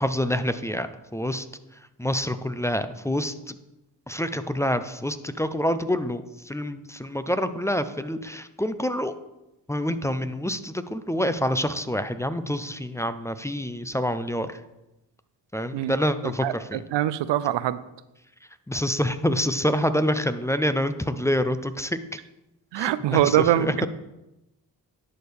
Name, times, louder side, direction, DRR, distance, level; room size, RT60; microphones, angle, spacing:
voice 1, 0.0-1.5 2.0-3.5 4.1-9.1 9.7-14.6 15.5-16.8 18.7-22.2 22.8-23.7, equal, 5° left, 11 dB, 0.5 m, -27 dB
voice 2, 16.2-17.8 22.7-23.9, right 12 dB, 70° right, 16 dB, 0.5 m, -23 dB
11.0 x 4.5 x 3.4 m, 0.94 s
supercardioid pair, 40°, 45 cm